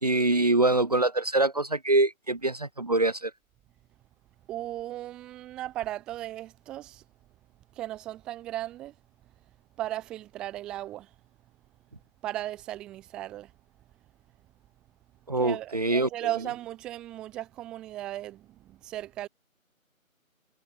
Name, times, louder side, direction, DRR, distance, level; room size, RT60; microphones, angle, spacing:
voice 1, 0.0-3.3 15.3-16.1, right 2 dB, 30° right, 3.0 m, -24 dB
voice 2, 4.5-7.0 7.7-8.9 9.8-11.1 12.2-13.5 15.4-19.3, right 14 dB, ahead, 4.4 m, -36 dB
figure-of-eight pair, 180°, 41 cm